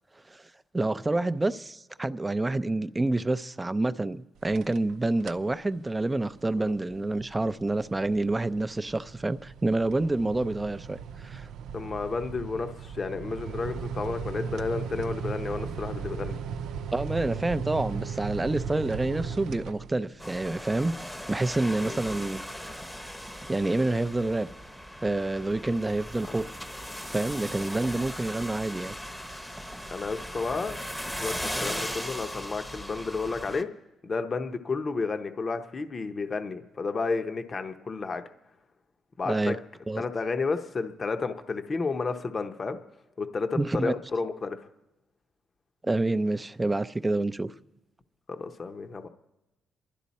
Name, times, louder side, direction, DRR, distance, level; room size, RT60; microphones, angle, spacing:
voice 1, 0.3-11.5 16.9-20.9 21.3-22.4 23.5-24.5 25.0-26.4 27.1-28.9 39.3-39.6 39.9-40.0 43.5-43.9 45.8-47.5, right 2 dB, 15° right, 0.5 m, -28 dB
sound 1, 4.4-4.9 5.2-5.5 6.0-20.3, right 6 dB, 85° right, 0.5 m, -37 dB
voice 2, 11.7-16.4 21.8-22.2 26.3-26.4 29.9-30.8 31.2-33.7 34.0-38.2 39.2-39.6 40.0-42.8 43.2-44.6 48.3-49.1, left 4 dB, 35° left, 0.8 m, -31 dB
sound 2, 20.2-33.6, equal, 5° left, 0.9 m, -38 dB
27.5 x 12.0 x 4.2 m
cardioid pair, 130°, 0 cm